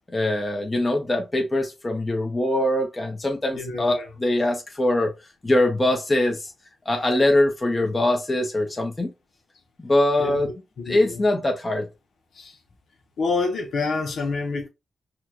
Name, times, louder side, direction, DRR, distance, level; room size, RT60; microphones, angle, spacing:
voice 1, 0.1-5.1 5.4-6.5 6.8-9.1 9.8-10.5 10.9-11.9, left 1 dB, 30° left, 1.0 m, -22 dB
voice 2, 3.5-4.1 10.2-11.2 12.3-12.6 13.2-14.7, left 4 dB, 75° left, 0.8 m, -28 dB
4.3 x 2.4 x 2.7 m
cardioid pair, 50°, 0 cm